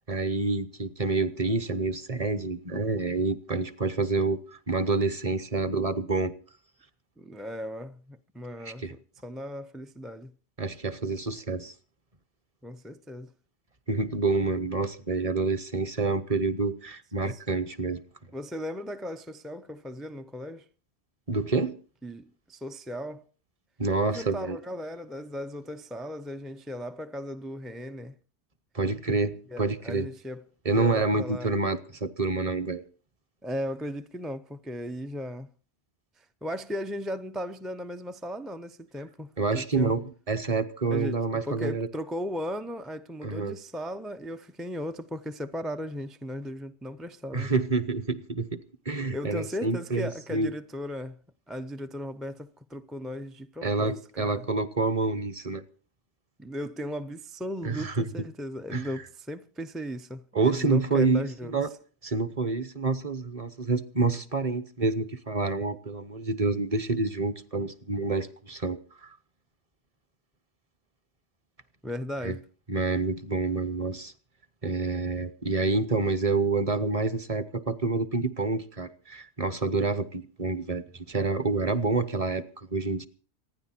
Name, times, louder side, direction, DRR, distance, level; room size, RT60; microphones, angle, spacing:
voice 1, 0.0-4.4 4.7-6.3 8.6-8.9 10.6-11.7 13.9-18.0 21.3-21.7 23.8-24.6 28.7-30.1 30.6-32.8 39.4-41.9 43.2-43.6 47.3-48.6 48.9-50.5 53.6-55.6 57.6-58.1 58.7-58.9 60.3-61.7 62.0-69.1 72.2-72.4 72.7-74.1 74.6-83.1, right 3 dB, 35° right, 0.9 m, -28 dB
voice 2, 7.2-10.3 12.6-13.3 17.2-17.4 18.3-20.7 22.0-23.3 24.0-28.2 29.5-31.5 33.4-35.5 36.2-40.0 40.9-47.5 49.1-51.2 51.5-54.5 56.4-61.6 71.8-72.4, equal, ahead, 0.3 m, -37 dB
26.0 x 10.0 x 4.3 m
omnidirectional pair, 1.2 m